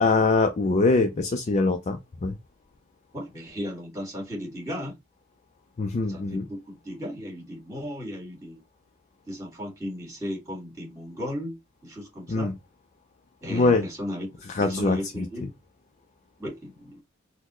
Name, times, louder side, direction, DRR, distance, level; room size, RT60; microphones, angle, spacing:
voice 1, 0.0-2.4 5.8-6.5 12.3-12.5 13.5-13.8 14.5-15.3, left 3 dB, 35° left, 0.4 m, -23 dB
voice 2, 3.1-5.0 6.1-8.6 9.3-12.5 13.4-15.5 16.4-17.0, equal, 15° right, 1.9 m, -36 dB
4.1 x 2.1 x 3.0 m
head